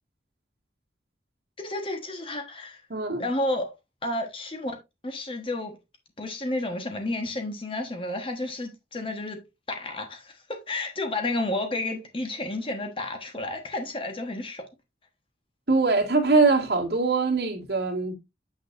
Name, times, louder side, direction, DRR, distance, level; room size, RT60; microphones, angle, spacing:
voice 1, 1.6-2.8 3.2-3.7 4.0-4.8 5.0-5.8 6.2-9.4 9.7-14.6, left 2 dB, 30° left, 1.2 m, -31 dB
voice 2, 2.9-3.2 15.7-18.1, right 3 dB, 65° right, 2.1 m, -22 dB
7.6 x 6.4 x 2.6 m
head